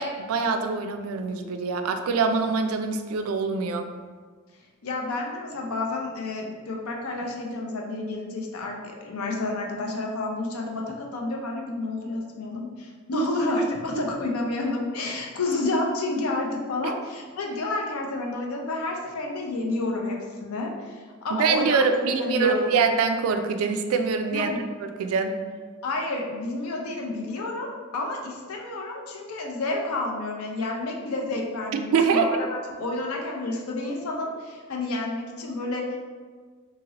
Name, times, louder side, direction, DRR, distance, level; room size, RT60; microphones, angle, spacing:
voice 1, 0.0-3.9 13.1-13.6 21.3-24.5 25.0-25.4 31.7-32.3, right 5 dB, 75° right, 7 dB, 0.3 m, -24 dB
voice 2, 4.8-21.9 22.2-22.8 24.3-24.6 25.8-36.0, left 2 dB, 90° left, 1 dB, 0.5 m, -30 dB
2.8 x 2.8 x 2.8 m, 1.5 s
head